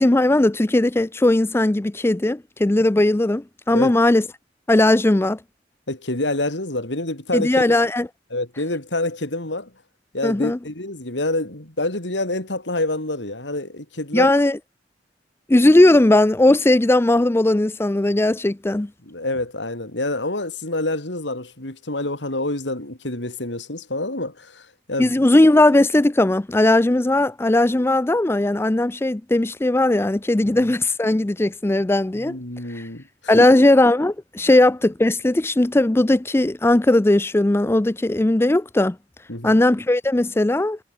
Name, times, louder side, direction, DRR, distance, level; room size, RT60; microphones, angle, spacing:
voice 1, 0.0-4.2 4.7-5.4 7.3-8.1 10.2-10.6 14.1-14.6 15.5-18.9 25.0-32.4 32.7-32.8 33.3-39.0 39.4-40.8, left 1 dB, 15° left, 0.4 m, -18 dB
voice 2, 5.9-7.8 8.3-9.7 10.1-14.3 19.0-25.1 30.4-30.7 32.1-33.5 39.3-39.6, left 2 dB, 85° left, 4.6 m, -27 dB
head